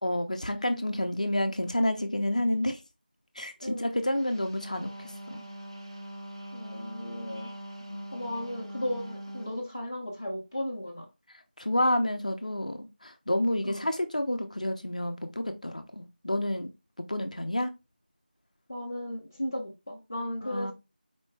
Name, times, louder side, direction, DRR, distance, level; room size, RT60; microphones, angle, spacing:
voice 1, 0.0-2.8 3.4-5.5 7.9-8.1 11.6-16.7 17.1-17.7 20.4-20.7, left 1 dB, 45° left, 0.7 m, -29 dB
voice 2, 3.6-4.0 6.5-7.5 8.1-11.1 13.6-13.9 18.7-20.7, left 1 dB, 20° left, 0.9 m, -35 dB
Wind instrument woodwind instrument, 4.3-9.6, equal, 30° right, 0.7 m, -42 dB
4.4 x 3.1 x 3.2 m
figure-of-eight pair, 180°, 5 cm